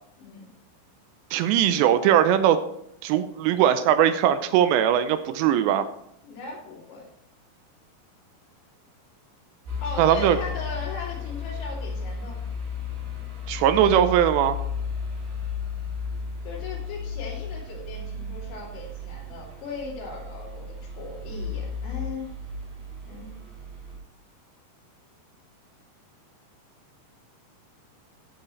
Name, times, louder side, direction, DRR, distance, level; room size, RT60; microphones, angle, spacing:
voice 1, 0.2-0.5 6.2-7.1 9.8-12.4 16.4-22.3 23.1-23.3, left 3 dB, 85° left, -4 dB, 5.5 m, -38 dB
voice 2, 1.3-2.6 3.0-5.9 10.0-10.4 13.5-14.6, right 10 dB, 80° right, 10 dB, 2.7 m, -20 dB
sound 1, 9.7-24.0, left 5 dB, 60° right, 5.7 m, -34 dB
16.0 x 7.2 x 3.2 m, 0.75 s
omnidirectional pair, 5.3 m